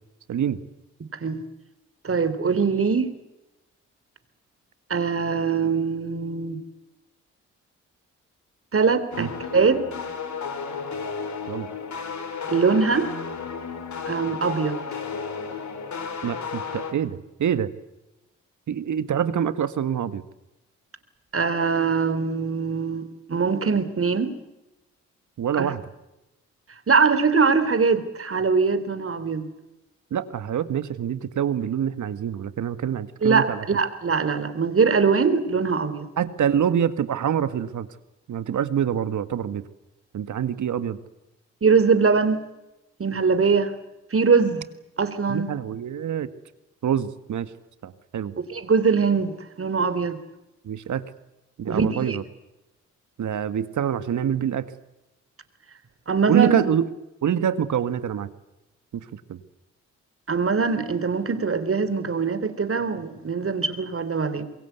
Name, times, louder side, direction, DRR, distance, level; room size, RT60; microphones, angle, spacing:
voice 1, 0.3-0.6 9.2-9.3 11.5-11.7 16.2-17.7 18.7-20.2 25.4-25.9 30.1-33.7 36.2-37.9 38.3-39.6 40.1-41.0 45.3-46.3 46.8-47.5 47.8-48.4 50.6-51.1 51.6-52.2 53.2-54.7 56.3-56.9 57.2-58.3 58.9-59.4, right 9 dB, 65° right, 13 dB, 1.7 m, -25 dB
voice 2, 2.0-3.1 4.9-6.6 8.7-9.8 12.5-13.1 14.1-14.8 21.3-24.3 25.6-25.7 26.9-29.5 33.2-36.1 41.6-42.5 43.0-43.7 44.1-44.6 45.0-45.5 48.5-50.2 51.7-52.2 56.1-56.6 60.3-64.4, right 5 dB, 45° right, 11 dB, 3.4 m, -22 dB
sound 1, 9.1-16.9, left 5 dB, 60° left, 4.4 m, -33 dB
25.5 x 22.0 x 8.2 m, 0.97 s
supercardioid pair, 50°, 32 cm